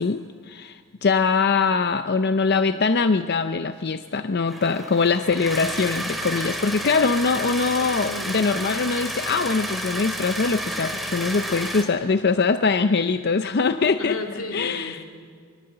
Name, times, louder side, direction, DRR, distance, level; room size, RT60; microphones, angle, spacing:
voice 1, 0.0-14.2 14.5-15.0, left 4 dB, 50° left, 10 dB, 0.6 m, -22 dB
sound 1, 4.5-11.8, right 1 dB, ahead, 2.4 m, -31 dB
voice 2, 8.1-8.5 14.0-15.0, left 2 dB, 85° left, 3 dB, 2.8 m, -33 dB
23.5 x 22.5 x 7.9 m, 2.1 s
head